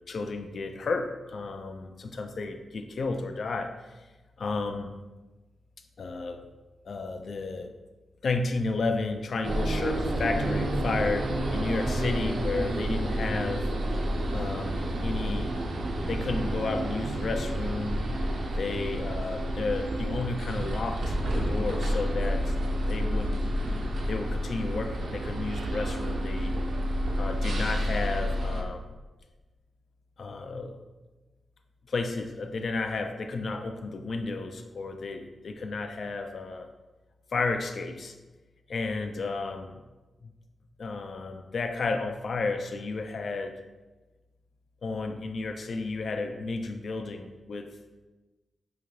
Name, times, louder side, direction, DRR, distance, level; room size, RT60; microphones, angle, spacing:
voice 1, 0.1-4.1 4.4-5.0 6.0-6.5 6.9-7.7 8.2-13.6 14.3-15.5 16.1-18.0 18.6-22.5 22.9-23.5 24.1-26.6 27.2-28.8 30.2-30.8 31.9-36.7 37.3-38.2 38.7-39.8 40.2-40.3 40.8-43.6 44.8-47.7, left 3 dB, 65° left, 6 dB, 0.3 m, -32 dB
sound 1, 9.4-28.6, equal, 80° right, 0.5 m, -29 dB
3.8 x 2.5 x 3.1 m, 1.2 s
cardioid pair, 65°, 0 cm